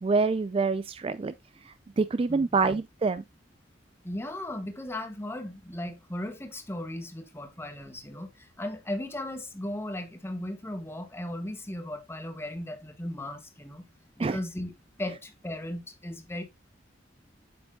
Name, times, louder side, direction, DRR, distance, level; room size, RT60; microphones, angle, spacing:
voice 1, 0.0-1.3 1.7-3.2 14.2-14.4, right 4 dB, 30° right, 0.3 m, -26 dB
voice 2, 2.3-2.8 4.0-13.8 14.2-14.7 15.0-16.4, left 1 dB, 15° left, 1.2 m, -36 dB
8.2 x 7.7 x 2.2 m
head